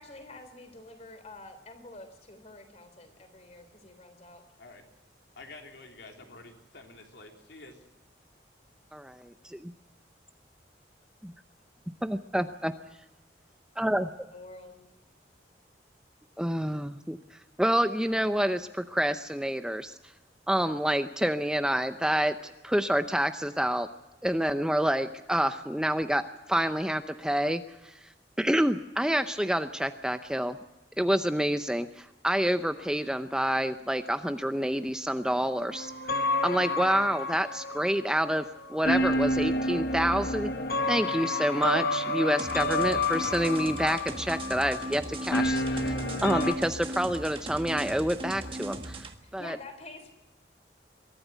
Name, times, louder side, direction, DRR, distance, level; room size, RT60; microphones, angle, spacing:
voice 1, 0.0-4.4 14.3-14.9 49.2-50.1, left 2 dB, 40° left, 8 dB, 3.6 m, -48 dB
voice 2, 5.4-7.7, left 2 dB, 75° left, 2 dB, 3.4 m, -48 dB
voice 3, 8.9-9.7 11.2-11.3 12.0-12.7 13.8-14.1 16.4-17.2 17.6-20.0 20.5-23.9 24.2-26.2 26.5-27.9 28.4-30.6 31.0-35.9 36.4-40.5 40.9-45.9 46.2-49.1 49.3-49.6, equal, 5° right, 9 dB, 0.6 m, -28 dB
sound 1, 35.7-46.5, left 1 dB, 55° left, 1.4 m, -30 dB
sound 2, 42.4-49.1, right 1 dB, 30° right, 1.5 m, -38 dB
23.0 x 13.5 x 9.2 m, 1.0 s
head